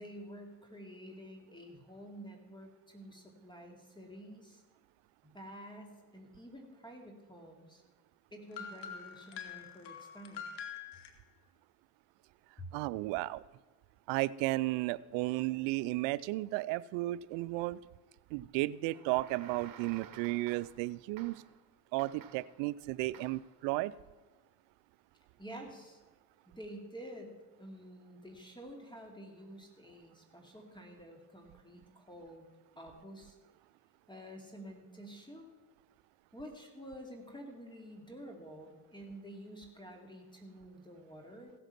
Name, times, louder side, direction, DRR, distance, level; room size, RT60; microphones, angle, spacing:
voice 1, 0.0-4.6 5.3-7.8 8.3-10.5 12.6-12.7 25.4-26.0 26.5-32.5 32.8-33.3 34.1-35.6 36.3-41.5, equal, 10° left, 2 dB, 2.5 m, -49 dB
sound 1, 8.5-11.1, left 7 dB, 65° left, 1.6 m, -45 dB
voice 2, 12.7-13.4 14.1-17.8 18.3-21.3 21.9-23.9, right 19 dB, 80° right, 18 dB, 0.6 m, -34 dB
sound 2, 18.9-20.9 21.2-21.6 22.0-22.6 23.1-23.5, right 9 dB, 50° right, 1.4 m, -53 dB
16.0 x 8.1 x 5.9 m, 1.3 s
supercardioid pair, 75°, 44 cm